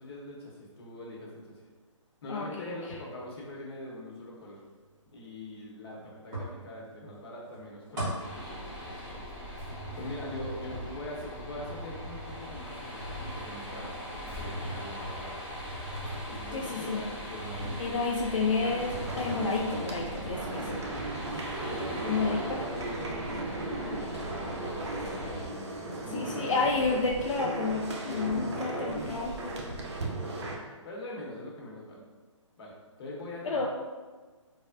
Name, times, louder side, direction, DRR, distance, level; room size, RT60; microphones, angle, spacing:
voice 1, 0.0-1.7 2.2-4.6 5.1-9.2 10.0-15.6 16.3-18.2 20.6-20.9 21.6-26.6 28.1-29.7 30.0-30.5 30.8-32.0 32.6-33.7, left 1 dB, 50° left, -3 dB, 0.9 m, -42 dB
voice 2, 2.3-2.8 16.5-17.0 17.8-20.6 22.1-22.6 26.1-29.3 33.4-33.7, left 4 dB, 75° left, -1 dB, 0.4 m, -30 dB
sound 1, 2.9-3.3 6.3-7.2 7.5-9.1 9.5-16.8 17.3-18.1 18.3-18.5 18.8-19.8, right 1 dB, 35° right, 1.2 m, -41 dB
sound 2, 8.2-25.5, equal, 5° right, 1.0 m, -41 dB
sound 3, 18.6-30.6, right 2 dB, 55° right, 0.6 m, -36 dB
3.3 x 2.0 x 2.5 m, 1.4 s
hypercardioid pair, 150°, 17 cm